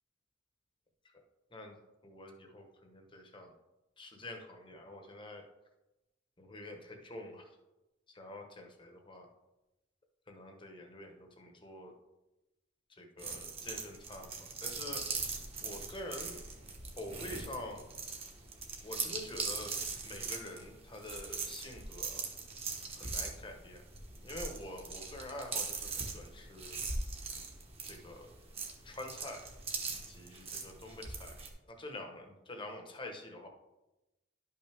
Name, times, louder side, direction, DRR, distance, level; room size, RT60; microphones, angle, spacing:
voice 1, 2.0-3.5 4.0-5.4 6.4-7.5 8.1-9.3 10.3-11.9 12.9-16.4 17.0-17.8 18.8-22.3 22.9-23.8 24.2-26.8 27.8-28.3 28.8-29.5 29.9-31.4 31.7-33.5, left 1 dB, 25° left, 3 dB, 1.1 m, -47 dB
sound 1, 13.2-31.5, right 4 dB, 30° right, 1.3 m, -41 dB
11.5 x 5.7 x 3.5 m, 1.0 s
head